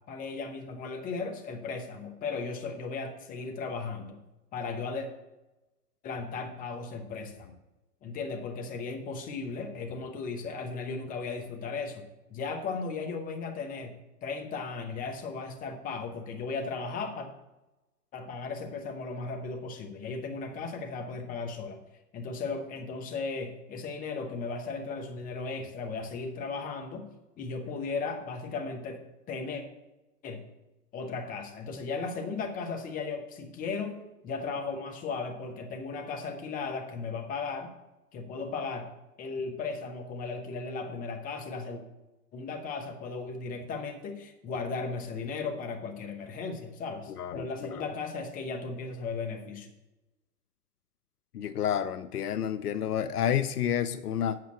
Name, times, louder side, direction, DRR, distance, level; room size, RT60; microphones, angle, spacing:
voice 1, 0.1-4.2 4.5-5.1 6.0-7.5 8.0-12.0 12.3-13.9 14.2-17.3 18.1-21.8 22.1-27.1 27.4-29.6 30.2-30.4 30.9-37.7 38.1-38.9 39.2-41.8 42.3-49.7, left 4 dB, 15° left, 4 dB, 1.1 m, -36 dB
voice 2, 47.2-47.8 51.3-54.4, left 9 dB, 70° left, 14 dB, 0.7 m, -30 dB
7.7 x 5.6 x 7.5 m, 1.0 s
hypercardioid pair, 125°, 47 cm